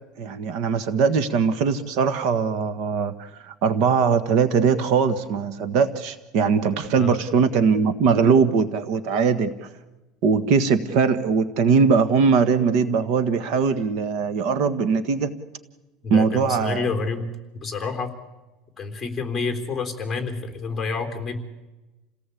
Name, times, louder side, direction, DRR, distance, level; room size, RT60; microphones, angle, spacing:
voice 1, 0.2-9.7 10.2-15.3 16.1-16.9, right 5 dB, 55° right, 12 dB, 1.5 m, -21 dB
voice 2, 16.0-17.3 17.6-18.1 18.8-21.4, left 4 dB, 10° left, 5 dB, 3.7 m, -28 dB
29.0 x 18.0 x 8.5 m, 1.1 s
cardioid pair, 165°, 0 cm